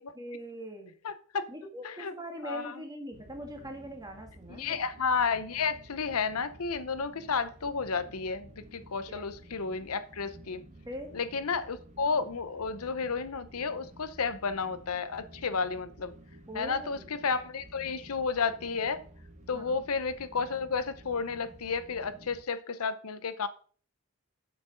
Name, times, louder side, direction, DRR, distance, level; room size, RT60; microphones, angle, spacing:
voice 1, 0.0-0.9 1.5-4.9 9.1-9.3 10.8-11.1 16.5-17.1 19.5-19.9, equal, 15° right, 3 dB, 1.8 m, -42 dB
voice 2, 1.0-1.5 1.8-2.1 2.4-2.7 4.5-10.6 11.1-16.1 16.5-19.0 19.5-23.5, left 5 dB, 80° left, 13 dB, 0.7 m, -32 dB
sound 1, 3.1-22.4, right 1 dB, 35° right, 1.0 m, -52 dB
7.6 x 6.1 x 5.1 m, 0.44 s
head